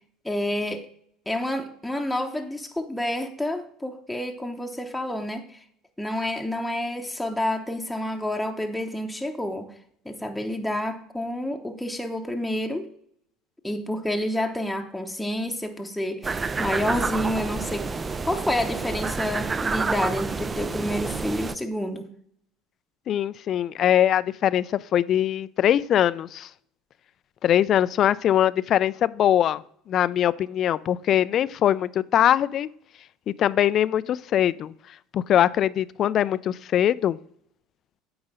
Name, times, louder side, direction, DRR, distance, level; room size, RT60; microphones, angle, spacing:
voice 1, 0.2-0.9 1.3-5.6 6.0-9.7 10.0-12.9 13.6-17.9 18.3-22.1, left 1 dB, 5° left, 2 dB, 0.9 m, -29 dB
sound 1, 16.2-21.5, right 4 dB, 25° right, 0.4 m, -29 dB
voice 2, 23.1-26.5 27.4-29.6 29.9-32.7 33.4-34.7 35.1-37.2, left 10 dB, 50° left, 18 dB, 0.3 m, -22 dB
8.9 x 3.9 x 5.2 m, 0.68 s
hypercardioid pair, 75°, 0 cm